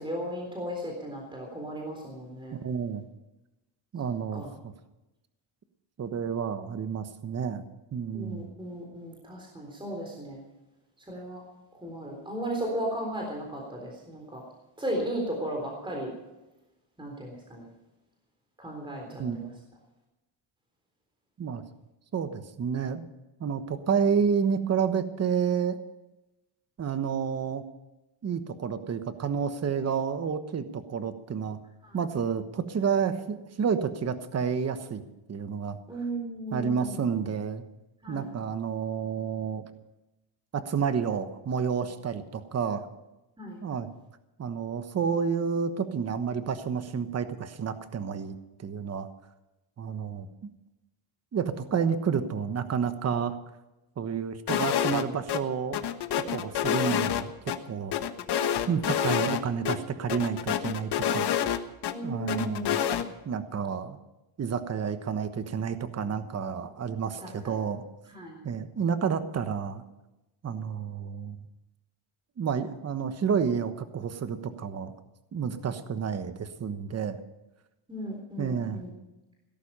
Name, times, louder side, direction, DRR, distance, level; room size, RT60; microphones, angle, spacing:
voice 1, 0.0-2.6 4.3-4.5 8.1-10.4 11.1-11.4 11.8-14.4 14.8-16.1 17.0-17.7 18.6-19.5 31.8-32.0 35.9-37.0 38.0-38.3 43.4-43.6 61.9-63.0 67.2-67.7 68.1-68.4 77.9-78.9, right 1 dB, 10° right, 0 dB, 3.7 m, -36 dB
voice 2, 2.5-3.0 3.9-4.4 6.0-7.6 7.9-8.5 19.2-19.4 21.4-21.6 22.1-23.0 23.4-25.8 26.8-27.6 28.2-31.6 31.9-35.0 35.3-35.8 36.5-37.6 38.1-39.7 40.5-42.9 43.6-43.9 44.4-49.1 49.8-50.3 51.3-53.4 54.0-55.8 56.1-57.9 58.7-61.6 62.0-62.8 63.2-64.0 64.4-67.8 68.4-69.8 70.4-71.4 72.4-74.9 75.3-77.2 78.4-78.8, right 6 dB, 30° right, 10 dB, 1.2 m, -30 dB
sound 1, 54.5-55.0 55.3-55.4 55.7-57.6 57.9-59.4 59.7-59.8 60.1-61.9 62.3-63.0, left 9 dB, 50° left, 1.3 m, -27 dB
17.0 x 13.5 x 5.5 m, 0.99 s
cardioid pair, 145°, 50 cm